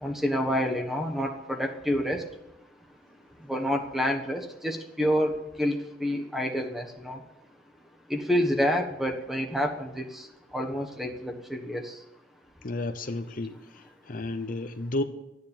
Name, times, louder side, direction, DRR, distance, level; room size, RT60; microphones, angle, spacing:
voice 1, 0.0-2.2 3.5-7.2 8.1-10.3 10.5-11.9, equal, ahead, 3 dB, 1.3 m, -28 dB
voice 2, 12.6-15.0, left 2 dB, 50° left, 8 dB, 0.8 m, -32 dB
13.0 x 9.6 x 7.2 m, 0.90 s
head